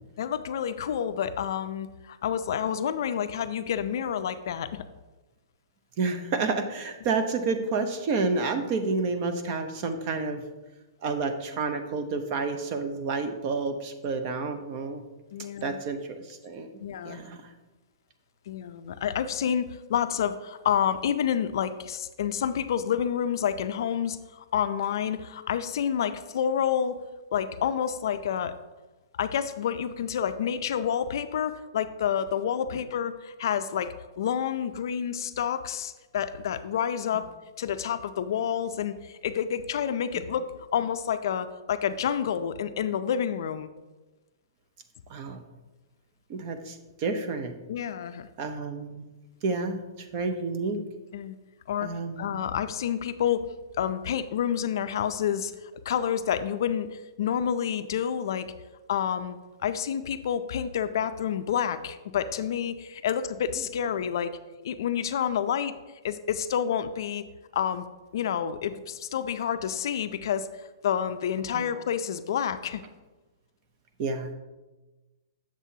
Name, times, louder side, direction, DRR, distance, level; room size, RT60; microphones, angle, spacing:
voice 1, 0.2-4.9 15.3-15.8 16.8-17.2 18.5-27.0 27.3-28.5 29.2-37.3 37.6-40.4 40.7-43.7 47.7-48.3 51.1-51.3 51.7-53.5 53.8-55.5 55.9-58.4 58.9-64.3 64.6-65.7 66.0-67.2 67.5-67.9 68.1-72.8, left 8 dB, 60° left, 11 dB, 0.4 m, -29 dB
voice 2, 6.0-10.4 11.0-15.0 15.6-16.7 17.0-17.5 45.1-45.4 46.3-47.5 48.4-49.0 49.4-50.8 51.8-52.4 71.5-71.7 74.0-74.3, right 4 dB, 30° right, 8 dB, 0.6 m, -30 dB
7.4 x 7.3 x 2.7 m, 1.2 s
hypercardioid pair, 165°, 2 cm